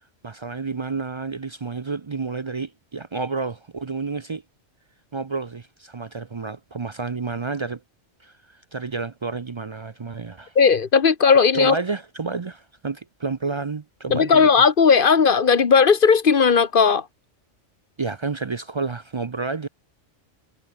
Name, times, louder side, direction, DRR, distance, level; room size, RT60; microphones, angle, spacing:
voice 1, 0.2-4.4 5.1-7.8 8.2-8.3 8.7-10.5 11.5-14.5 18.0-19.7, right 4 dB, 40° right, 0.4 m, -30 dB
voice 2, 10.5-11.8 14.1-17.1, left 5 dB, 45° left, 1.2 m, -16 dB
omnidirectional pair, 1.3 m